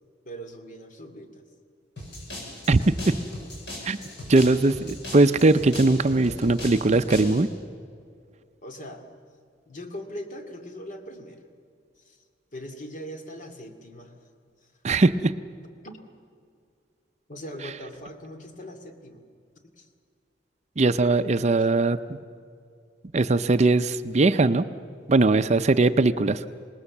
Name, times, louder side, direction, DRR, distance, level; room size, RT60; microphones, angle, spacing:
voice 1, 0.2-1.4 8.6-9.0 9.7-11.4 12.0-12.2 12.5-14.3 14.6-14.7 15.8-16.0 17.3-19.2 19.7-19.9 21.6-21.7, equal, 45° left, 5 dB, 2.3 m, -40 dB
sound 1, 2.0-7.4, left 1 dB, 65° left, 7.9 m, -38 dB
voice 2, 4.3-7.5 14.8-15.3 20.8-22.0 23.1-24.6 25.1-26.4, right 2 dB, 40° right, 11 dB, 0.5 m, -20 dB
26.5 x 19.5 x 7.2 m, 2.3 s
head